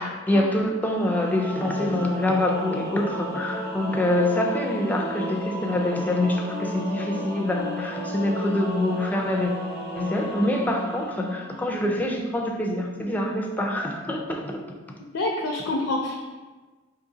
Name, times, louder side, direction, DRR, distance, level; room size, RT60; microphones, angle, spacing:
voice 1, 0.0-9.5 10.0-14.6, left 1 dB, 10° left, 0 dB, 0.4 m, -25 dB
Singing / Musical instrument, 0.8-12.1, equal, 50° right, 1.2 m, -33 dB
voice 2, 15.1-16.2, left 2 dB, 75° left, 0 dB, 0.5 m, -27 dB
3.8 x 2.9 x 3.9 m, 1.3 s
head